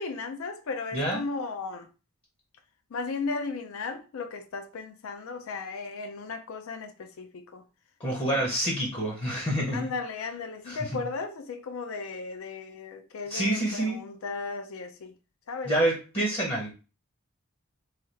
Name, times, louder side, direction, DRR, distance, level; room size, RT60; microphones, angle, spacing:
voice 1, 0.0-1.9 2.9-7.7 8.2-8.5 9.7-15.1 15.5-15.7, left 4 dB, 70° left, 0.4 m, -35 dB
voice 2, 0.9-1.2 8.0-9.9 10.7-11.0 13.3-14.0 15.7-16.7, right 1 dB, 25° left, 0.7 m, -27 dB
3.2 x 2.3 x 2.8 m
head